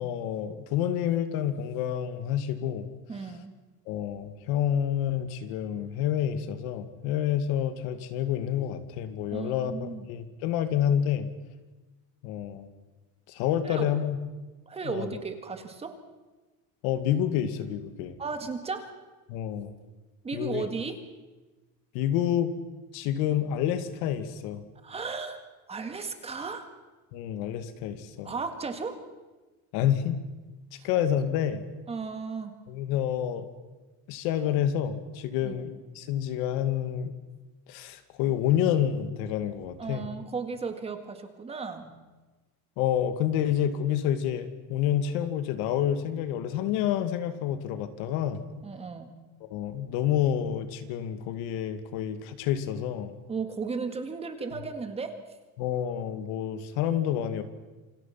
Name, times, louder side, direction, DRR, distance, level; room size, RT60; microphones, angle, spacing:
voice 1, 0.0-2.9 3.9-11.3 12.2-12.7 13.3-14.2 14.8-15.1 16.8-18.2 19.3-19.7 20.3-20.6 21.9-22.5 22.9-24.6 27.1-28.3 29.7-30.2 30.8-31.6 32.7-33.5 34.1-37.1 37.7-40.0 42.8-48.4 49.4-53.1 55.6-57.4, left 10 dB, 80° left, 9 dB, 2.4 m, -28 dB
voice 2, 3.1-3.5 9.3-10.1 13.6-13.9 14.7-16.0 18.2-18.9 20.2-21.0 24.8-25.4 25.7-26.7 28.2-29.0 30.8-30.9 31.9-32.5 35.4-35.6 39.8-41.9 48.6-49.1 53.3-55.2, right 4 dB, 15° right, 7 dB, 1.9 m, -35 dB
28.0 x 25.0 x 5.9 m, 1.2 s
cardioid pair, 180°, 37 cm